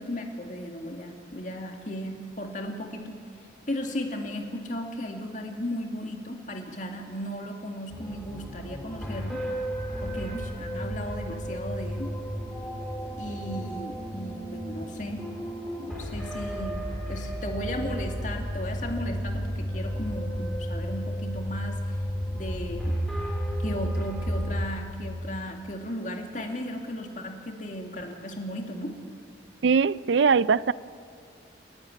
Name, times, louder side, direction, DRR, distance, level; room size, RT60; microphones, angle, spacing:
voice 1, 0.0-3.2 3.7-9.4 10.0-12.2 13.2-15.3 15.8-21.8 22.3-23.0 23.6-29.0, equal, 40° left, 3 dB, 2.3 m, -35 dB
sound 1, 7.9-24.7, equal, ahead, 4.0 m, -33 dB
voice 2, 29.6-30.7, right 5 dB, 80° right, 19 dB, 0.4 m, -21 dB
29.5 x 10.5 x 9.9 m, 2.3 s
head